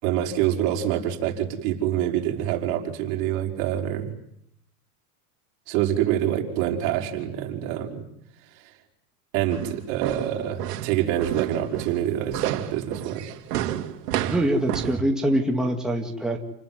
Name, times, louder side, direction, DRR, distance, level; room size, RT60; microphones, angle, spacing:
voice 1, 0.0-4.1 5.7-8.0 8.5-8.8 9.3-13.4, right 11 dB, 55° right, 2 dB, 5.6 m, -26 dB
sound 1, 9.5-15.0, right 12 dB, 90° right, 3.0 m, -30 dB
voice 2, 14.3-16.4, right 1 dB, ahead, 0 dB, 2.2 m, -24 dB
29.5 x 20.5 x 9.7 m, 0.76 s
supercardioid pair, 150°, 46 cm